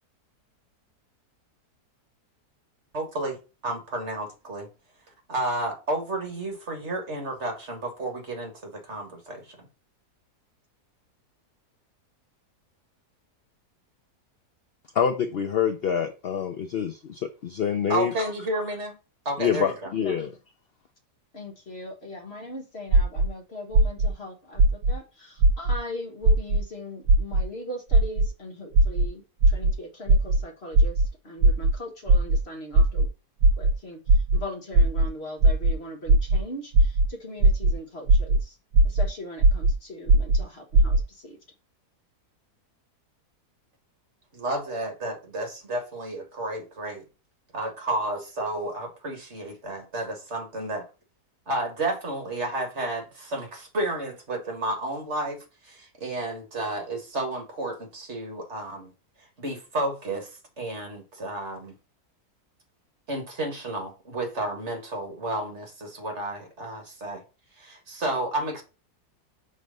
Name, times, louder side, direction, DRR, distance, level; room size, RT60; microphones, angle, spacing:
voice 1, 2.9-3.4 3.6-4.7 5.3-9.7 17.9-19.0 19.3-19.9 44.3-47.1 47.5-50.9 51.5-58.9 59.4-61.7 63.1-67.2 67.6-68.6, right 1 dB, 45° right, 2.0 m, -31 dB
voice 2, 14.9-18.3 19.4-20.3, left 7 dB, 65° left, 0.5 m, -26 dB
voice 3, 21.3-33.1 33.6-34.0 34.3-38.6 38.8-41.4, left 1 dB, 40° left, 1.5 m, -39 dB
sound 1, 22.9-23.3 23.8-24.1 24.6-24.9 25.4-25.8 26.3-26.6 27.1-27.4 27.9-28.3 28.8-29.1 29.4-29.7 30.1-30.4 30.7-31.1 31.4-31.7 32.1-32.4 32.7-33.1 33.4-33.7 34.1-34.4 34.7-35.1 35.4-35.7 36.1-36.4 36.7-37.1 37.4-37.7 38.1-38.4 38.7-39.1 39.4-39.7 40.1-40.4 40.7-41.0, right 2 dB, 80° right, 1.3 m, -17 dB
6.2 x 3.3 x 5.2 m
omnidirectional pair, 1.7 m